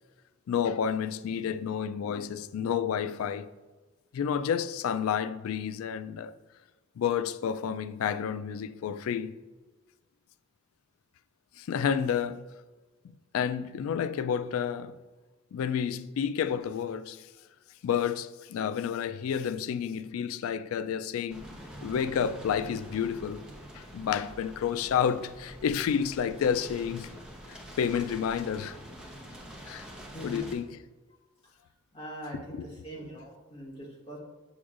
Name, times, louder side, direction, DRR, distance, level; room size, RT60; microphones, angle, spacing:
voice 1, 0.5-3.5 4.1-6.3 7.0-9.4 11.6-12.4 13.0-14.9 15.5-17.3 17.8-21.6 21.8-23.5 23.7-27.1 27.5-28.8 29.6-29.9 30.2-30.8 32.5-32.8, left 7 dB, 80° left, 0.3 m, -30 dB
sound 1, 21.3-30.5, equal, 5° right, 0.6 m, -46 dB
voice 2, 30.1-30.5 31.9-32.6 32.8-34.2, right 1 dB, 25° left, 1.4 m, -42 dB
6.2 x 6.1 x 2.4 m
head